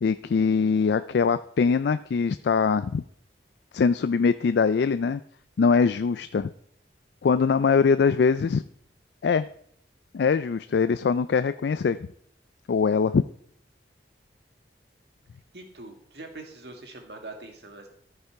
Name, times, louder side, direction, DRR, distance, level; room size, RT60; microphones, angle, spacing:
voice 1, 0.0-3.0 3.7-5.2 5.6-6.5 7.2-8.6 9.2-9.5 10.1-12.0 12.7-13.2, left 5 dB, 70° left, 12 dB, 0.3 m, -22 dB
voice 2, 15.5-17.9, right 2 dB, 65° right, 3 dB, 1.8 m, -43 dB
14.0 x 5.5 x 4.6 m, 0.68 s
head